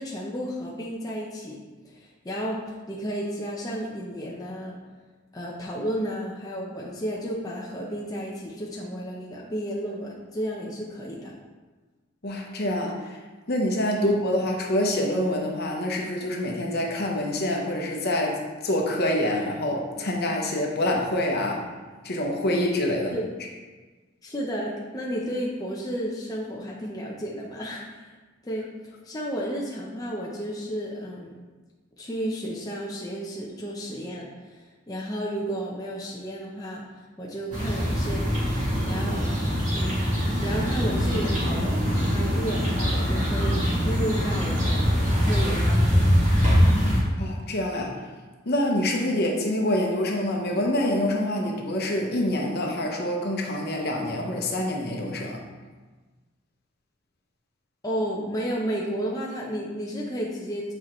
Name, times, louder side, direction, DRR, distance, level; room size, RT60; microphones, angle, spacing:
voice 1, 0.0-4.8 5.3-11.3 14.0-14.2 23.1-23.3 24.2-28.1 28.4-31.3 32.0-36.8 37.2-38.3 38.9-39.3 39.7-40.1 40.4-41.8 42.1-44.9 45.2-46.2 49.1-49.3 57.8-60.7, equal, 20° left, -3 dB, 0.6 m, -32 dB
voice 2, 12.2-13.2 13.5-21.6 22.0-23.2 47.2-47.9 48.5-55.4, left 1 dB, 50° left, 0 dB, 1.0 m, -26 dB
sound 1, 37.5-47.0, equal, 35° right, 1.9 m, -23 dB
8.2 x 4.4 x 3.1 m, 1.3 s
head